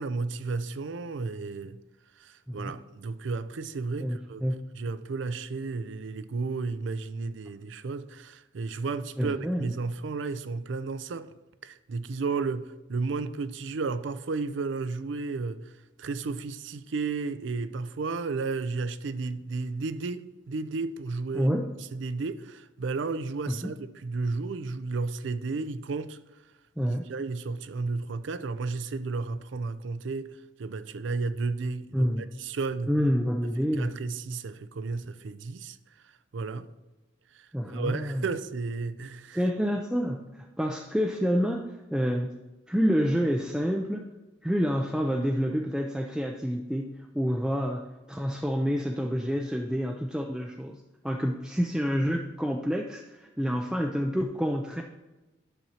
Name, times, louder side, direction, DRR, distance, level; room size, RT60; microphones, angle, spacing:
voice 1, 0.0-1.8 2.2-4.5 4.7-11.3 11.6-15.7 16.0-21.5 21.9-26.2 26.8-32.9 33.8-35.8 36.3-36.7 37.3-39.4, right 4 dB, 70° right, 0.4 m, -33 dB
voice 2, 2.5-2.8 4.0-4.6 9.2-9.7 21.3-21.7 23.5-23.7 26.8-27.0 31.9-32.3 32.9-33.9 37.5-38.2 39.3-41.6 41.9-42.3 42.7-44.1 44.4-47.8 48.1-54.8, equal, 5° right, 0.3 m, -28 dB
12.0 x 6.1 x 2.8 m
head